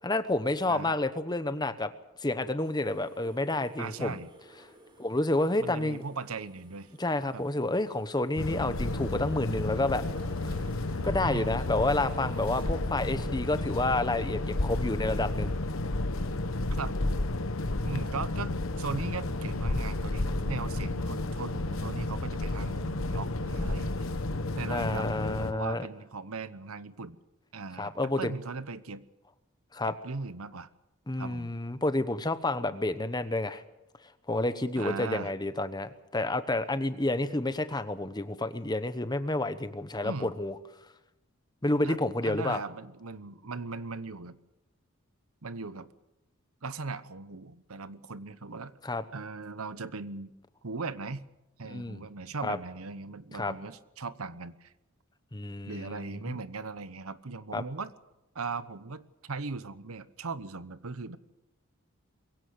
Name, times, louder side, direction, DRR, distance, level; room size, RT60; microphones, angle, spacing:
voice 1, 0.0-1.9 2.2-4.2 5.0-6.0 7.0-10.0 11.0-15.6 24.7-25.9 27.8-28.3 29.7-29.9 31.1-33.6 34.3-40.5 41.6-42.6 48.8-49.0 51.7-52.0 52.4-52.6 53.3-53.5 55.3-56.4 57.5-57.6, left 2 dB, 20° left, 12 dB, 1.0 m, -29 dB
voice 2, 0.6-0.9 3.8-4.3 5.6-6.9 7.3-7.5 11.3-11.5 16.8-16.9 17.8-18.5 18.8-24.1 24.5-25.1 25.5-27.2 27.5-29.0 29.9-30.7 31.2-31.5 34.8-35.3 40.0-40.3 41.8-44.4 45.4-45.9 46.6-48.7 49.1-50.3 50.6-51.2 51.6-54.7 55.7-57.9 58.3-61.2, right 4 dB, 80° right, 15 dB, 1.0 m, -38 dB
sound 1, 2.6-12.6, right 1 dB, 20° right, 3.8 m, -56 dB
sound 2, 8.4-25.5, left 2 dB, 65° left, 1.1 m, -32 dB
22.5 x 16.5 x 7.9 m, 0.95 s
head